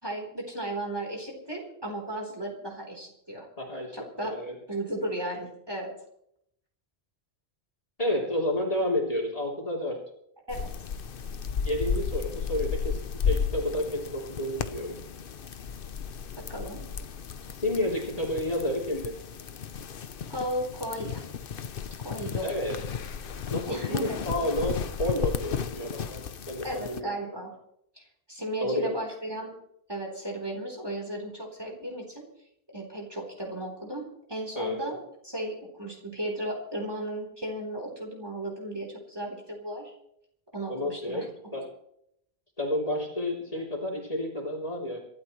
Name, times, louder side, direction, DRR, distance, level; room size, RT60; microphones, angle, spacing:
voice 1, 0.0-3.5 3.9-4.3 4.7-5.9 10.5-10.7 16.5-16.8 20.3-21.2 22.0-22.5 23.7-24.2 26.6-27.5 28.0-29.5 29.9-32.2 32.7-35.0 35.2-39.9 40.5-41.3, right 1 dB, 25° right, -1 dB, 3.9 m, -35 dB
voice 2, 3.6-4.5 8.0-10.0 11.6-13.0 13.3-15.0 17.5-19.1 22.4-22.8 23.5-27.1 28.6-29.0 34.6-34.9 40.7-41.7 42.6-45.0, left 1 dB, 35° left, -1 dB, 3.5 m, -30 dB
sound 1, 10.5-27.0, left 6 dB, 65° left, 1.0 m, -34 dB
26.5 x 13.5 x 3.2 m, 0.73 s
omnidirectional pair, 1.0 m